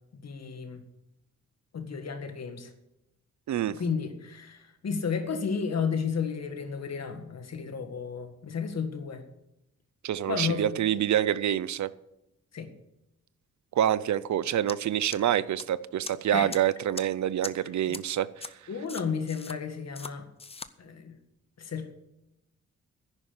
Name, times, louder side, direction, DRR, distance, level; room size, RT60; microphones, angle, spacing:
voice 1, 0.1-0.8 1.7-2.7 3.7-9.2 10.3-10.7 12.5-12.7 16.3-16.5 17.9-18.0 18.7-20.3 20.8-21.2 21.6-21.9, left 6 dB, 60° left, 1.8 m, -32 dB
voice 2, 10.0-11.9 13.7-18.5, right 11 dB, 70° right, 0.6 m, -27 dB
sound 1, 14.7-14.8 15.1-15.6 16.1-16.2 16.5-16.6 17.0-17.1 17.4-17.5 17.9-18.0 18.4-18.5 18.9-19.6 20.0-20.1 20.4-20.7, left 4 dB, 20° left, 0.6 m, -39 dB
10.5 x 9.7 x 7.0 m
wide cardioid pair, 115°, 30 cm